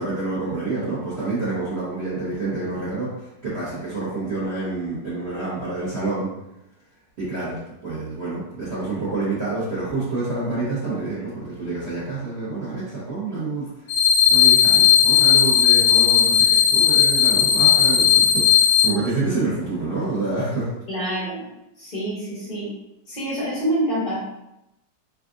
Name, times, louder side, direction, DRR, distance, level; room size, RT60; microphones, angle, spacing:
voice 1, 0.0-6.3 7.2-13.9 14.3-20.7, right 3 dB, 45° right, -12 dB, 1.1 m, -28 dB
sound 1, 13.9-18.9, left 9 dB, 85° left, 0.6 m, -16 dB
voice 2, 20.9-21.4 21.8-22.8 23.1-24.2, right 1 dB, 35° left, -7 dB, 0.7 m, -26 dB
3.5 x 2.4 x 2.4 m, 0.89 s
omnidirectional pair, 2.0 m